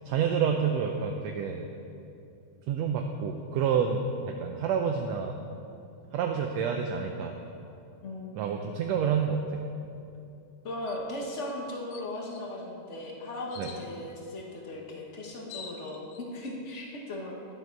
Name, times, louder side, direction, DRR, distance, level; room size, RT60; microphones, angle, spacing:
voice 1, 0.1-1.7 2.7-5.4 6.1-7.4 8.3-9.6 13.6-13.7, right 7 dB, 75° right, 4 dB, 1.6 m, -28 dB
voice 2, 8.0-8.3 10.6-17.3, left 1 dB, 65° left, -1 dB, 0.7 m, -37 dB
sound 1, 10.9-11.1 11.5-11.6 11.9-12.4 13.5-13.8 15.0-15.1 15.3-16.2, left 7 dB, 85° left, 2.2 m, -46 dB
13.0 x 10.5 x 4.6 m, 2.7 s
omnidirectional pair, 3.3 m